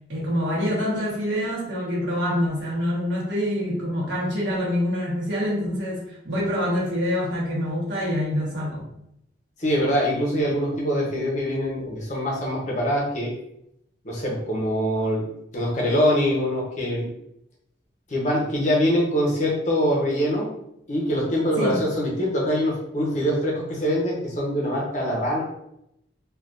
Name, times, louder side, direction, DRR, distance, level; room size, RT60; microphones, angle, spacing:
voice 1, 0.1-8.9 21.6-21.8, equal, 80° right, -5 dB, 1.3 m, -26 dB
voice 2, 9.6-13.3 14.0-17.1 18.1-20.6 20.9-25.4, equal, 40° left, -3 dB, 0.9 m, -24 dB
3.4 x 2.5 x 2.5 m, 0.78 s
head